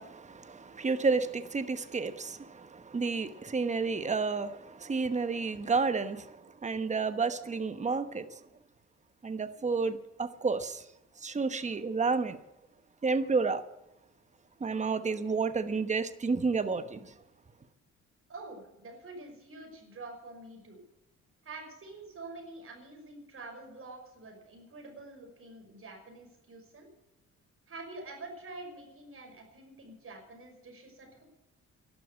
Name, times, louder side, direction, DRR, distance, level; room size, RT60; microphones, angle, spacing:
voice 1, 0.0-8.4 9.2-10.8 11.2-12.4 13.0-13.6 14.6-17.1, right 4 dB, 25° right, 1.1 m, -31 dB
voice 2, 18.3-20.8 21.4-26.9 27.7-31.2, right 2 dB, 45° right, 5.8 m, -47 dB
12.0 x 11.5 x 8.1 m
cardioid pair, 90°, 30 cm